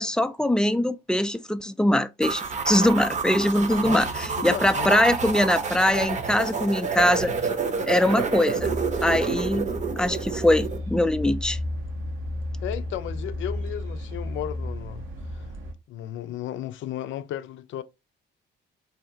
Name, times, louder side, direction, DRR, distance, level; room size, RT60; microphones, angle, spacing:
voice 1, 0.0-7.3 7.9-8.7 9.0-9.7 10.0-11.6, left 1 dB, 5° left, 0.3 m, -22 dB
sound 1, 2.2-10.8, right 4 dB, 35° right, 0.7 m, -28 dB
voice 2, 4.4-4.9 12.6-15.0 15.3-15.5 15.9-17.8, left 12 dB, 75° left, 0.4 m, -34 dB
sound 2, 8.6-15.7, left 1 dB, 90° right, 0.9 m, -33 dB
3.3 x 2.7 x 2.7 m
cardioid pair, 90°, 20 cm